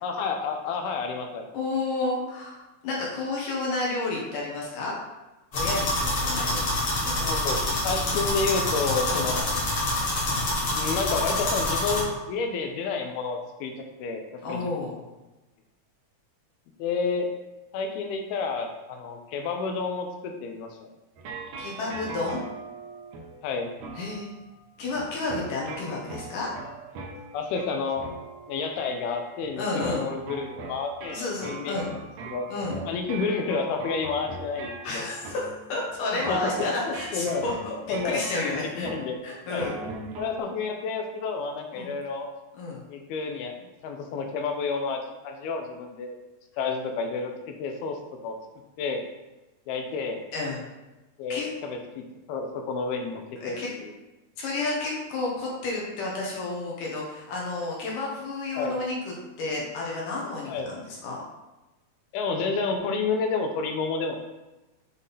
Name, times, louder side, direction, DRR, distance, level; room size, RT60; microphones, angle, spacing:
voice 1, 0.0-1.5 6.3-6.5 7.2-7.6 7.8-9.5 10.7-14.7 16.8-17.3 17.7-20.9 23.4-23.7 27.3-28.0 28.5-32.0 32.3-32.5 32.8-35.1 36.3-37.4 37.9-38.2 38.7-39.2 39.5-39.9 40.2-42.3 42.9-46.2 46.6-48.0 48.2-48.4 48.8-49.0 49.7-50.2 51.2-53.9 58.5-58.8 60.5-60.8 62.1-64.2, left 4 dB, 80° left, 4 dB, 2.5 m, -30 dB
voice 2, 1.5-2.6 2.8-4.9 5.5-6.7 7.0-7.2 9.1-9.3 14.4-15.0 21.6-22.4 24.0-24.3 24.8-26.5 29.6-30.1 31.1-31.9 32.5-32.8 34.8-37.7 38.0-38.9 39.2-39.8 41.7-41.9 42.6-42.8 50.3-50.6 51.3-51.5 53.4-53.7 54.4-61.2, left 2 dB, 65° left, -4 dB, 2.6 m, -31 dB
sound 1, 5.5-12.0, left 1 dB, 50° left, 1.7 m, -26 dB
sound 2, 21.2-29.5 29.8-40.4, right 3 dB, 80° right, 1.6 m, -41 dB
7.4 x 3.7 x 4.1 m, 1.1 s
omnidirectional pair, 4.5 m